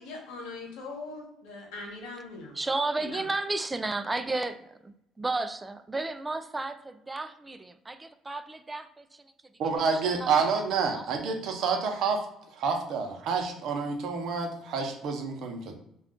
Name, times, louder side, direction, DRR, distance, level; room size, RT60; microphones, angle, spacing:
voice 1, 0.0-2.6 3.0-3.3, left 3 dB, 85° left, 1 dB, 1.0 m, -41 dB
voice 2, 2.6-4.9 5.2-6.8 7.1-8.9 10.0-10.3 10.6-10.7 10.9-11.4, right 2 dB, 15° right, 9 dB, 0.3 m, -32 dB
voice 3, 9.6-12.2 12.6-15.7, right 5 dB, 70° right, 3 dB, 0.7 m, -28 dB
2.4 x 2.3 x 3.6 m, 0.77 s
supercardioid pair, 85°, 0 cm